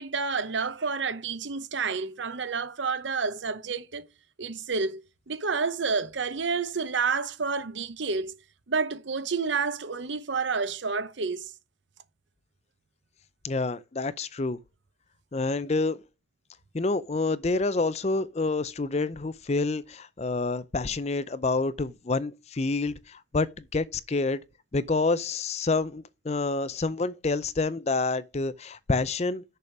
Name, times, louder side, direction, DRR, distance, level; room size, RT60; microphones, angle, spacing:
voice 1, 0.0-4.0 4.4-5.0 5.3-8.3 8.7-11.5, right 4 dB, 75° right, 0.9 m, -29 dB
voice 2, 13.4-14.6 15.3-16.0 16.7-24.4 24.7-29.4, left 3 dB, 35° left, 0.5 m, -28 dB
6.8 x 5.1 x 6.0 m
head